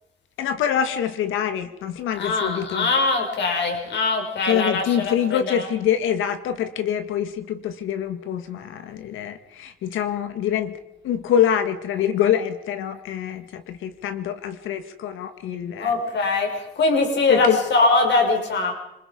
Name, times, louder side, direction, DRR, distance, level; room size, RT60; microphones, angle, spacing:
voice 1, 0.4-2.9 4.4-10.7 11.0-15.9 17.3-17.6, left 9 dB, 85° left, 9 dB, 1.9 m, -25 dB
voice 2, 2.2-5.7 15.8-18.7, left 3 dB, 65° left, 2 dB, 6.1 m, -22 dB
26.5 x 21.0 x 5.4 m, 0.89 s
cardioid pair, 90°, 20 cm